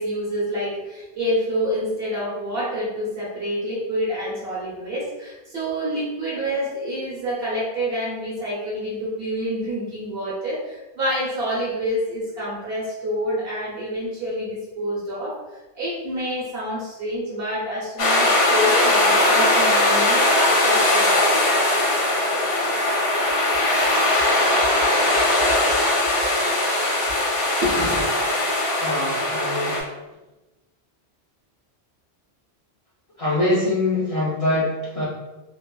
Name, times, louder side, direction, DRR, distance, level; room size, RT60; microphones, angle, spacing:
voice 1, 0.0-21.4 27.6-28.1, equal, 65° right, -7 dB, 1.3 m, -27 dB
sound 1, 18.0-29.8, left 1 dB, 75° left, 1.0 m, -20 dB
voice 2, 28.8-29.8 33.2-35.1, left 1 dB, 40° left, -9 dB, 0.6 m, -23 dB
2.7 x 2.4 x 2.3 m, 1.1 s
omnidirectional pair, 1.1 m